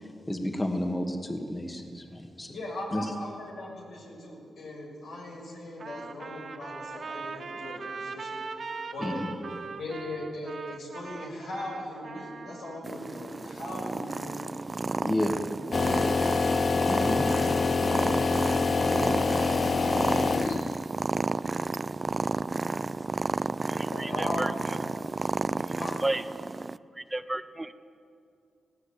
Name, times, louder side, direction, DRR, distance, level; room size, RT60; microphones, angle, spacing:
voice 1, 0.3-2.5 2.9-3.1 9.0-9.3 15.0-15.4 16.9-17.3, left 1 dB, 20° left, 4 dB, 2.2 m, -31 dB
voice 2, 2.5-8.4 8.9-9.2 9.8-14.4 20.4-20.7 23.9-24.5 25.8-26.0, left 1 dB, 85° left, -1 dB, 6.4 m, -39 dB
Trumpet, 5.8-12.8, right 4 dB, 60° right, 1.8 m, -40 dB
Purr, 12.8-26.8, right 3 dB, 35° right, 0.4 m, -32 dB
sound 1, 15.7-20.9, left 4 dB, 50° left, 0.5 m, -26 dB
voice 3, 23.7-24.8 25.6-25.7 26.0-26.2 27.0-27.7, right 2 dB, 15° right, 12 dB, 0.8 m, -33 dB
19.5 x 16.5 x 8.7 m, 2.4 s
cardioid pair, 65°, 0 cm